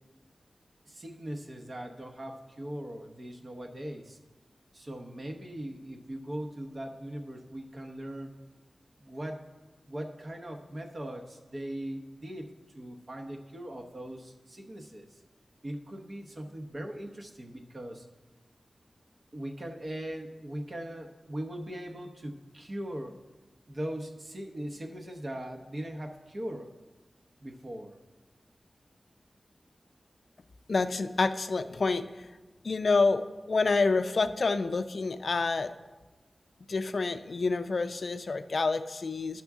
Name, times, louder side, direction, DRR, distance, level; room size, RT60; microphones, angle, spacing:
voice 1, 0.8-4.2 4.7-8.3 9.0-9.5 9.9-12.5 12.7-15.2 15.6-18.1 19.3-23.2 23.7-26.7 27.4-27.9, right 1 dB, 40° right, 3 dB, 0.8 m, -40 dB
voice 2, 30.7-32.3 32.6-35.7 36.7-39.4, left 3 dB, 60° left, 9 dB, 0.4 m, -28 dB
11.5 x 6.0 x 3.6 m, 1.2 s
wide cardioid pair, 110°, 0 cm